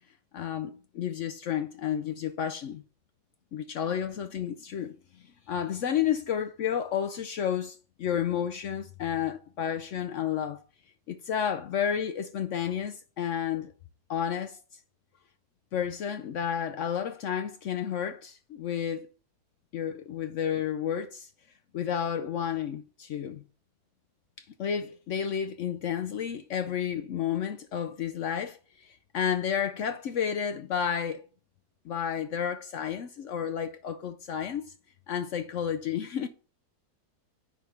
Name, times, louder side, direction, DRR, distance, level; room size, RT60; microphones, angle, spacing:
voice 1, 0.3-2.8 3.5-5.0 5.5-10.6 11.1-13.7 14.1-14.6 15.7-19.1 19.7-21.3 21.7-23.4 24.6-31.2 31.8-34.7 35.1-36.3, left 8 dB, 70° left, 0.7 m, -31 dB
10.0 x 3.4 x 5.7 m
omnidirectional pair, 1.8 m